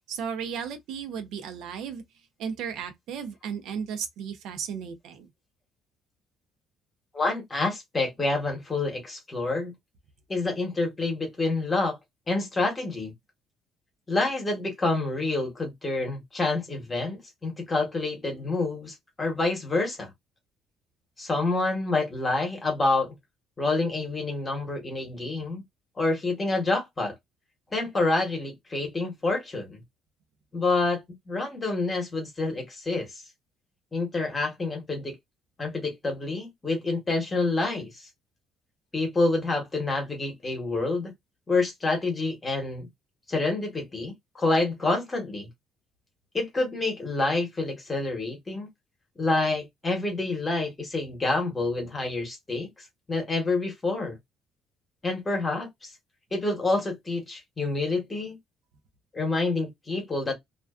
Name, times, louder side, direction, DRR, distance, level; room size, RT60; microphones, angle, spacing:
voice 1, 0.1-2.0 2.4-5.3, right 7 dB, 60° right, 0.5 m, -34 dB
voice 2, 7.1-9.7 10.3-12.0 12.3-13.1 14.1-20.1 21.2-23.1 23.6-25.6 26.0-27.1 27.7-29.8 30.5-33.2 33.9-35.1 35.6-38.1 38.9-41.1 41.5-42.9 43.3-45.5 46.3-48.7 49.2-54.2 55.0-55.9 56.3-58.4 59.1-60.3, left 3 dB, 15° left, 0.9 m, -28 dB
2.4 x 2.2 x 2.3 m
cardioid pair, 180°, 0 cm